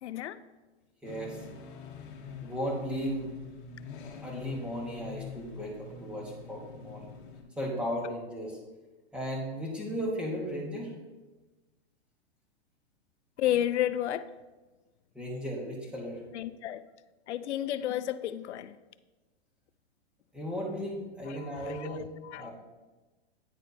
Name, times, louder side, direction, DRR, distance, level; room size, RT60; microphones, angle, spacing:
voice 1, 0.0-0.4 13.4-14.2 16.3-16.8 17.3-18.7 21.4-22.0 22.3-22.5, left 12 dB, 90° left, 14 dB, 0.5 m, -31 dB
sound 1, 1.0-7.4, left 6 dB, 50° left, 1.0 m, -45 dB
voice 2, 1.0-1.4 2.4-3.3 4.2-7.1 7.6-8.6 9.1-10.9 15.1-16.2 20.3-22.1 22.3-22.5, equal, 5° right, -3 dB, 1.2 m, -35 dB
9.7 x 4.3 x 2.6 m, 1.2 s
hypercardioid pair, 140°, 33 cm